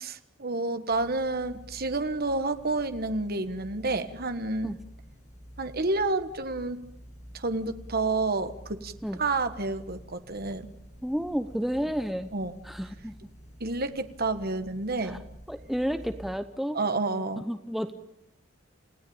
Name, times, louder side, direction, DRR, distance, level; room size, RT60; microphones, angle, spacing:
voice 1, 0.0-4.8 5.6-6.8 7.3-8.9 9.2-10.7 12.3-12.5 13.6-15.2 16.7-17.4, right 3 dB, 50° right, 9 dB, 1.5 m, -29 dB
sound 1, 0.9-16.4, equal, 35° left, 6.6 m, -49 dB
voice 2, 11.0-12.3 12.6-13.3 15.0-15.2 15.5-16.8 17.4-18.0, equal, ahead, 9 dB, 0.8 m, -31 dB
28.5 x 17.0 x 8.8 m, 0.86 s
head